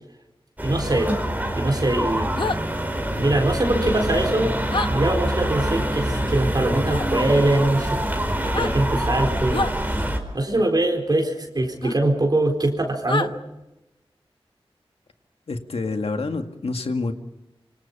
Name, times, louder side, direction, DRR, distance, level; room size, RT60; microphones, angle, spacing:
sound 1, 0.6-10.2, right 1 dB, 15° right, 4.6 m, -25 dB
voice 1, 0.6-1.1 1.5-2.3 3.2-4.6 4.9-8.1 8.5-10.0 10.3-13.3, right 1 dB, 45° right, 1 dB, 4.3 m, -22 dB
sound 2, 2.4-2.6 4.7-4.9 6.9-7.1 8.4-8.7 9.5-9.7 11.8-11.9 13.1-13.3, left 3 dB, 55° left, 1.1 m, -26 dB
voice 2, 15.5-17.1, left 3 dB, 80° left, 5 dB, 2.2 m, -27 dB
26.5 x 25.5 x 5.6 m, 0.95 s
wide cardioid pair, 80°, 10 cm